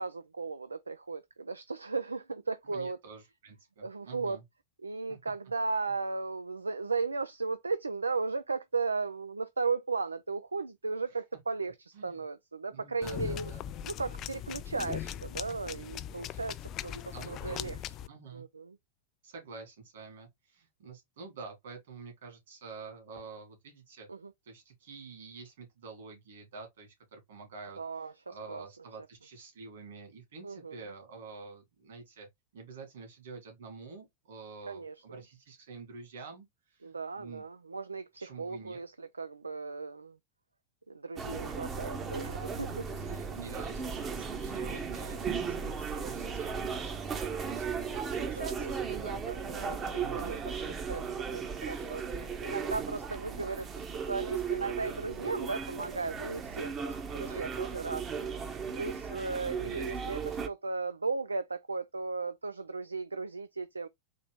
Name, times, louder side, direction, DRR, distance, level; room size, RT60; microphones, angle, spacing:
voice 1, 0.0-3.0 3.8-4.4 4.8-13.5 13.8-16.6 16.8-16.9 17.3-17.8 18.3-18.8 24.1-24.3 27.8-28.6 30.4-30.9 34.7-35.2 36.8-40.2 40.9-42.9 48.4-52.0 52.4-58.3 58.7-63.9, right 4 dB, 80° right, 0.3 m, -36 dB
voice 2, 2.7-4.4 5.1-5.2 11.9-12.2 12.7-13.6 16.9-17.8 18.1-18.5 19.2-24.1 24.4-27.8 28.3-32.3 32.5-37.4 38.2-38.8 43.0-48.8 49.9-50.5 57.1-57.5 59.5-59.9, right 4 dB, 60° right, 2.5 m, -48 dB
sound 1, 13.0-18.1, left 11 dB, 35° left, 0.3 m, -40 dB
sound 2, 41.2-60.5, right 6 dB, 25° right, 0.8 m, -36 dB
4.2 x 2.9 x 3.4 m
figure-of-eight pair, 90°, 0 cm